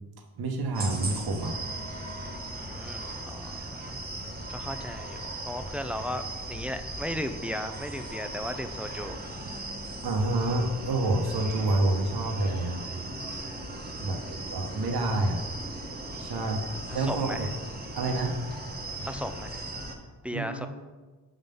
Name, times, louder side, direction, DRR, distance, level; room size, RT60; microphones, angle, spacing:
voice 1, 0.4-1.5 10.0-12.8 14.0-14.2 14.5-15.4 16.2-16.6 16.9-17.5 18.0-18.4 20.3-20.7, right 2 dB, 75° right, 2 dB, 1.1 m, -28 dB
sound 1, 0.7-19.9, right 2 dB, 25° right, 1.1 m, -38 dB
voice 2, 2.5-4.0 4.5-9.2 14.1-14.4 16.9-17.5 19.0-19.6 20.2-20.7, left 1 dB, 5° right, 8 dB, 0.4 m, -36 dB
6.1 x 3.8 x 5.3 m, 1.3 s
cardioid pair, 70°, 37 cm